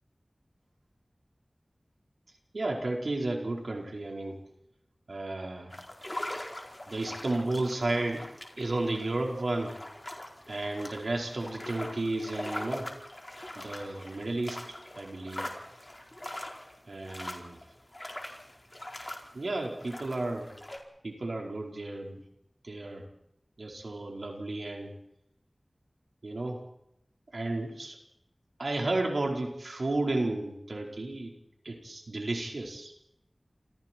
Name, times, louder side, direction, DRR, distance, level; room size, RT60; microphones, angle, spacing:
voice 1, 2.5-4.4 5.1-5.7 6.9-8.3 8.6-9.8 10.5-12.9 13.6-14.6 15.0-15.4 16.9-17.6 19.3-20.5 21.0-22.2 22.6-23.1 23.6-24.9 26.2-26.6 27.3-27.9 28.6-31.3 31.6-32.9, right 2 dB, 90° right, 0 dB, 4.6 m, -32 dB
sound 1, 5.7-20.8, left 1 dB, 30° left, 4.8 m, -42 dB
29.5 x 28.0 x 4.6 m, 0.82 s
wide cardioid pair, 55°, 0 cm